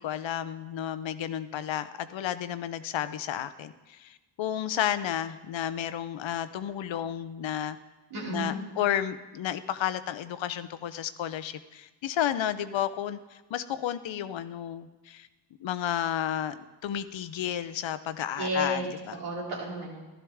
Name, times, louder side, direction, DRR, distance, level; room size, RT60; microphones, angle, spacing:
voice 1, 0.0-7.8 8.3-13.2 13.5-15.3 15.6-16.5 16.8-19.2, left 10 dB, 65° left, 13 dB, 0.7 m, -32 dB
voice 2, 8.1-8.6 18.4-18.8 19.1-20.0, equal, 80° right, -5 dB, 3.4 m, -32 dB
12.0 x 11.5 x 3.6 m, 1.1 s
supercardioid pair, 45°, 49 cm